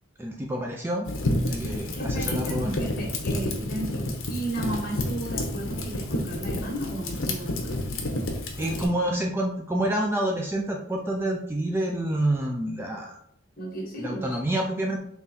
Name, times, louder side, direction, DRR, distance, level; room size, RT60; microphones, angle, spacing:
voice 1, 0.2-1.1 1.5-2.9 8.6-13.2 14.0-15.0, right 1 dB, 10° right, 1 dB, 0.3 m, -28 dB
Fire, 1.0-8.8, left 1 dB, 75° left, 0.8 m, -30 dB
voice 2, 1.9-7.9 8.5-8.9 13.6-14.4, right 1 dB, 45° left, -2 dB, 1.4 m, -34 dB
3.8 x 3.0 x 4.2 m, 0.69 s
head